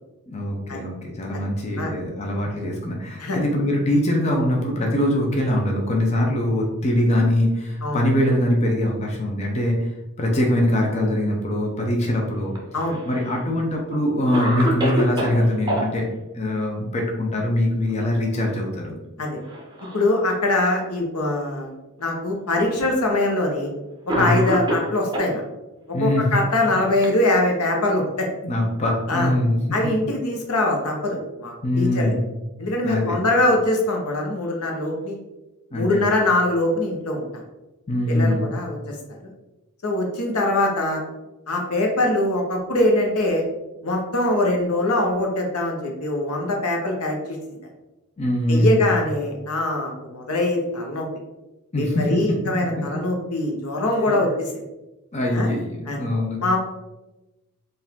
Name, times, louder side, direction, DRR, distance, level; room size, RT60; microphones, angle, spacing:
voice 1, 0.3-9.9 10.2-12.5 13.1-16.1 16.3-19.0 24.1-24.4 25.9-26.3 28.4-29.6 31.6-32.3 32.8-33.2 35.7-36.1 37.9-38.5 48.2-48.9 51.7-52.1 54.1-54.2 55.1-56.4, left 1 dB, 30° left, 0 dB, 0.6 m, -22 dB
Cough, 12.5-13.4 13.9-14.0 14.3-15.9 17.7-18.2 18.5-18.6 19.4-20.1 20.9-21.0 22.0-22.1 23.3-23.5 24.1-25.3 26.3-27.7, equal, 20° right, 0.7 m, -27 dB
voice 2, 19.9-21.7 22.0-23.7 24.0-25.4 26.0-28.3 29.1-29.3 29.7-32.1 32.6-35.2 35.7-37.3 38.1-39.2 39.8-41.0 41.5-43.4 43.8-47.6 48.5-51.0 51.8-54.5 55.3-55.5 55.9-56.0 56.4-56.6, left 1 dB, 85° left, 1 dB, 0.9 m, -23 dB
4.7 x 2.6 x 3.6 m, 1.0 s
head